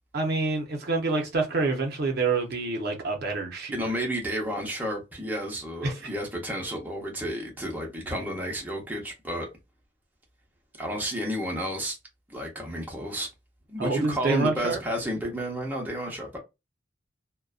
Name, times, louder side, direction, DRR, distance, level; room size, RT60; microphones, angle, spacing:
voice 1, 0.1-3.7 5.8-6.0 13.8-14.8, right 3 dB, 55° right, 0.6 m, -27 dB
voice 2, 3.7-9.5 10.8-12.0 12.3-13.3 13.7-16.4, equal, 10° right, 0.7 m, -31 dB
2.5 x 2.1 x 2.3 m
head